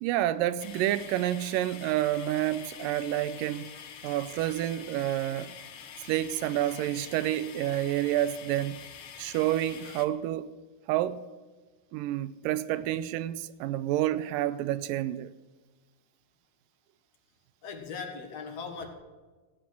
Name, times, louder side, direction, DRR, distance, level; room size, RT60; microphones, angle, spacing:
voice 1, 0.0-3.7 4.0-5.6 6.0-8.8 9.2-10.5 10.9-11.3 11.9-15.3, right 13 dB, 85° right, 2.2 m, -29 dB
sound 1, 0.6-10.1, left 8 dB, 90° left, 1.2 m, -46 dB
voice 2, 17.6-18.9, left 5 dB, 55° left, 2.3 m, -39 dB
16.5 x 8.4 x 6.1 m
omnidirectional pair, 4.0 m